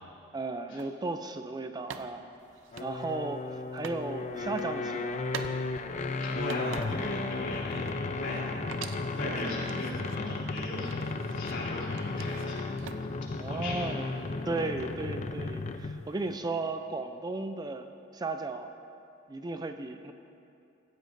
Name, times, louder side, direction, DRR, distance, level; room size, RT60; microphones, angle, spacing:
voice 1, 0.3-2.2 2.8-5.3 13.4-14.2 14.5-18.7 19.3-20.1, right 3 dB, 20° right, 7 dB, 0.4 m, -35 dB
sound 1, 0.8-0.9 1.9-4.0 4.3-4.7 5.3-5.6 5.9-7.2 7.5-8.4 8.7-10.2 10.6-11.6 12.0-13.3, right 6 dB, 70° right, 0.6 m, -45 dB
sound 2, 2.7-16.1, left 3 dB, 35° left, 0.5 m, -35 dB
voice 2, 6.2-12.7 13.4-13.8, left 1 dB, 65° left, -5 dB, 3.4 m, -38 dB
16.5 x 15.0 x 2.6 m, 2.7 s
head